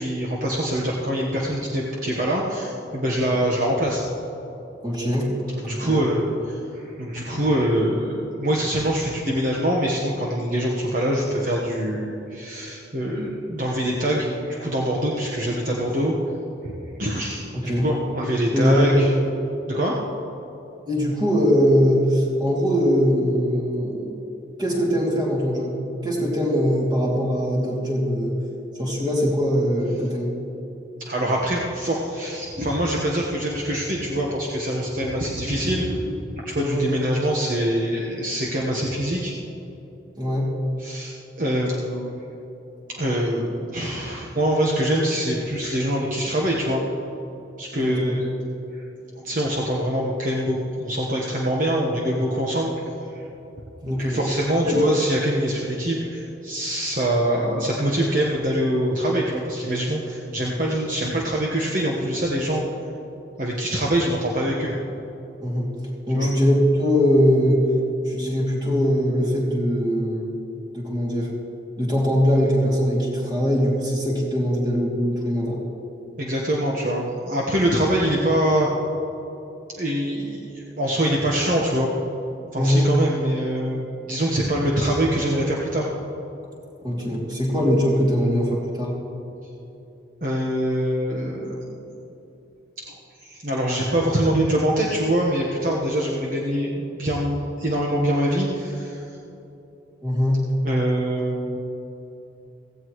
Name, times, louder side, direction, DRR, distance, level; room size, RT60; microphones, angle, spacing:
voice 1, 0.0-4.0 5.6-16.1 16.6-19.1 19.7-19.9 31.0-39.3 40.8-42.1 43.0-46.8 47.6-48.2 48.7-48.8 49.1-52.7 53.1-53.3 53.8-62.6 63.4-64.7 66.1-66.3 76.2-78.7 79.8-81.9 82.5-85.9 90.2-91.7 92.9-93.0 93.2-99.0 100.6-101.6, right 1 dB, 45° right, -3 dB, 1.3 m, -24 dB
voice 2, 4.8-5.3 5.8-6.0 17.5-17.9 18.5-19.1 20.9-24.2 24.6-28.3 28.8-30.3 36.6-36.9 40.2-40.5 47.8-48.1 53.8-54.3 54.6-54.8 65.4-65.7 66.1-67.6 68.0-70.3 70.7-71.3 71.8-75.6 82.6-82.9 86.8-88.9 100.0-100.4, equal, 25° right, -4 dB, 2.7 m, -21 dB
16.5 x 16.0 x 3.2 m, 3.0 s
head